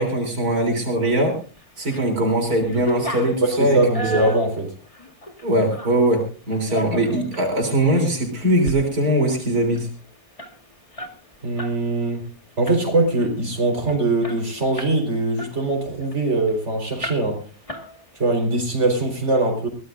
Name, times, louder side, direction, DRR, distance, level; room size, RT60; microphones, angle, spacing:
voice 1, 0.0-1.4 1.8-4.2 5.4-9.9, right 1 dB, 90° right, 3 dB, 4.2 m, -21 dB
sound 1, 1.6-2.1 2.4-6.0 6.5-7.5 7.9-8.1 8.5-8.8 9.1-9.2 9.5-11.8 12.1-12.3 12.7-13.1 13.6-13.7 13.9-15.0 15.4-16.6 17.0-17.4 17.7-18.3, equal, 20° left, 1.9 m, -33 dB
voice 2, 3.4-4.7 11.4-12.2 12.6-17.4 18.1-19.7, right 2 dB, 50° right, 2 dB, 4.9 m, -22 dB
22.5 x 17.0 x 2.6 m, 0.36 s
omnidirectional pair, 1.5 m